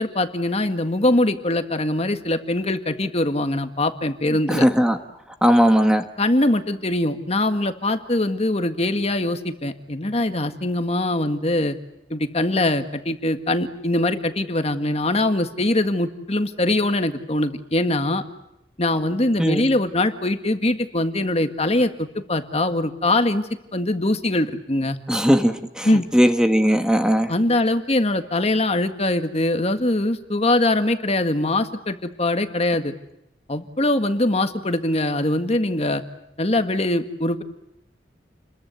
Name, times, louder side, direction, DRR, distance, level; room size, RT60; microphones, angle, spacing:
voice 1, 0.0-4.7 6.2-11.8 12.1-18.2 18.8-25.0 25.9-26.1 27.3-32.9 33.5-36.0 36.4-37.4, left 1 dB, 35° left, 8 dB, 1.7 m, -22 dB
voice 2, 4.5-5.0 5.4-6.1 19.4-19.6 25.1-25.9 26.1-27.3, equal, 5° right, 6 dB, 1.4 m, -18 dB
29.5 x 22.0 x 8.3 m, 0.85 s
head